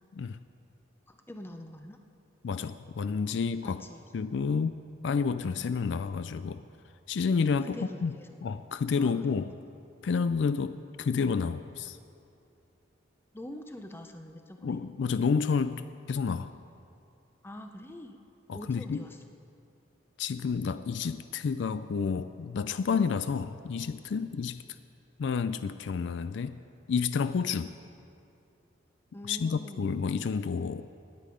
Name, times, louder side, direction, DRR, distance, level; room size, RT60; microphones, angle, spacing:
voice 1, 1.1-2.0 3.6-4.0 7.6-8.4 9.0-9.4 13.3-14.8 17.4-18.2 18.5-19.2 29.1-30.1, left 1 dB, 10° left, 6 dB, 0.7 m, -44 dB
voice 2, 2.4-3.8 4.1-6.6 7.1-7.8 8.0-8.1 8.4-9.5 10.0-12.0 14.6-15.8 16.1-16.5 18.5-19.0 20.2-24.6 25.2-26.6 26.9-27.8 29.3-30.9, left 5 dB, 65° left, 12 dB, 0.3 m, -30 dB
19.0 x 8.5 x 5.0 m, 2.5 s
head